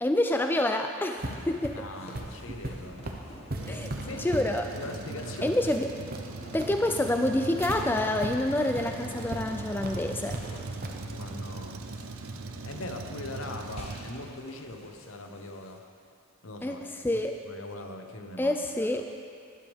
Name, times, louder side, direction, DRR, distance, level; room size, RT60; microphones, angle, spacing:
voice 1, 0.0-1.8 3.7-3.9 4.2-4.7 5.4-5.9 6.5-10.4 16.6-17.4 18.4-19.1, left 1 dB, 10° left, 5 dB, 0.3 m, -27 dB
sound 1, 1.1-15.8, left 1 dB, 30° left, 1.2 m, -49 dB
sound 2, 1.2-7.8 8.2-8.3 8.7-8.8 9.3-9.4 9.8-10.4 10.8-11.0, right 1 dB, 45° right, 0.9 m, -38 dB
voice 2, 1.7-3.0 3.7-4.3 4.7-5.7 11.1-11.8 12.6-15.8 16.4-16.8 17.1-19.0, left 2 dB, 70° left, 4 dB, 0.9 m, -41 dB
Truck, 3.6-14.7, right 3 dB, 80° right, 0.6 m, -40 dB
12.5 x 12.0 x 3.5 m, 2.4 s
head